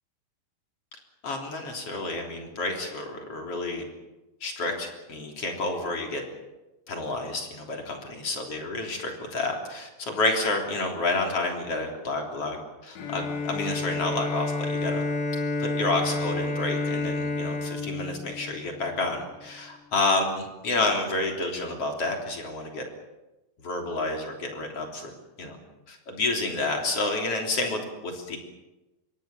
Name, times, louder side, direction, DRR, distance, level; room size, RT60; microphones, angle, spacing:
voice 1, 1.2-3.8 4.4-6.2 6.9-12.6 12.8-15.0 15.6-22.9 23.6-25.1 25.4-25.6 25.9-28.4, left 2 dB, 35° left, 2 dB, 4.0 m, -29 dB
Bowed string instrument, 13.0-19.0, left 3 dB, 85° left, 5.2 m, -30 dB
26.5 x 21.5 x 7.3 m, 1.1 s
omnidirectional pair, 4.9 m